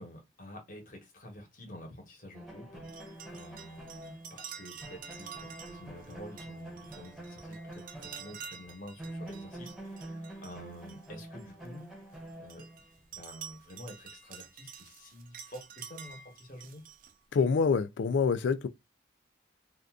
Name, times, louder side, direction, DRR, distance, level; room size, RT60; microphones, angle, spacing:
voice 1, 0.0-11.9 12.4-12.6 13.1-16.8, left 1 dB, 45° left, 1.1 m, -49 dB
sound 1, 2.3-8.7 9.0-12.9, right 1 dB, ahead, 0.7 m, -46 dB
sound 2, 2.8-11.7 12.1-17.2, right 7 dB, 45° right, 0.4 m, -49 dB
voice 2, 17.3-18.7, left 5 dB, 75° left, 0.4 m, -26 dB
2.6 x 2.4 x 3.5 m
head